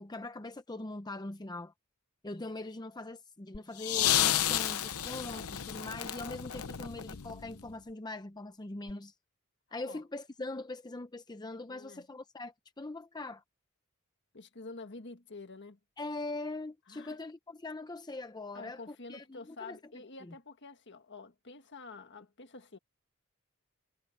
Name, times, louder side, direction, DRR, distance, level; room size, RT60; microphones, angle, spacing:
voice 1, 0.0-1.7 2.2-9.1 9.7-13.4 16.0-19.8 20.2-20.3, left 2 dB, 20° left, 0.7 m, -42 dB
sound 1, 3.5-7.7 8.9-9.0, left 11 dB, 85° left, 0.8 m, -31 dB
voice 2, 11.7-12.1 14.3-15.8 16.9-17.2 18.5-22.8, left 3 dB, 55° left, 1.7 m, -48 dB
head